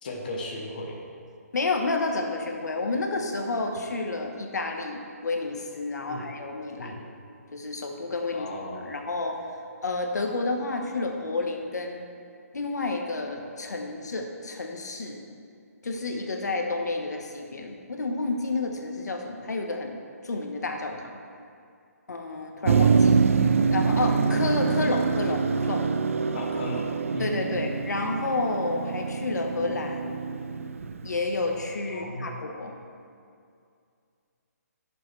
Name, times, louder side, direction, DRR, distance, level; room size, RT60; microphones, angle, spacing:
voice 1, 0.0-1.0 6.1-6.3 6.8-7.1 8.3-8.9 26.3-27.6 31.9-32.3, left 1 dB, 30° left, -2 dB, 1.1 m, -36 dB
voice 2, 1.5-6.9 7.5-8.5 8.8-9.4 9.8-12.1 12.5-15.2 15.8-20.0 20.2-21.1 22.1-23.4 23.7-25.9 27.2-30.2 31.0-32.7, left 3 dB, 85° left, 3 dB, 1.3 m, -30 dB
Motor vehicle (road), 22.6-31.6, right 5 dB, 55° right, 0.4 m, -25 dB
15.0 x 6.8 x 3.3 m, 2.4 s
hypercardioid pair, 180°, 9 cm